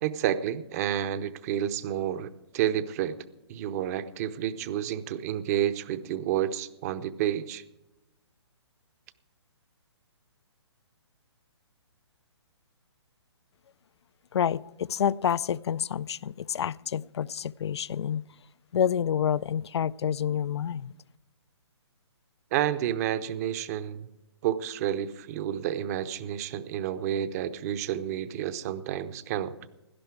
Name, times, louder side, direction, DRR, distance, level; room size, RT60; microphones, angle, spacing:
voice 1, 0.0-3.2 3.5-7.6 22.5-24.1 24.4-29.6, right 11 dB, 35° right, 14 dB, 0.8 m, -30 dB
voice 2, 14.3-18.2 18.7-20.9, left 8 dB, 70° left, 21 dB, 0.4 m, -28 dB
17.5 x 11.0 x 4.8 m, 0.94 s
hypercardioid pair, 140°, 15 cm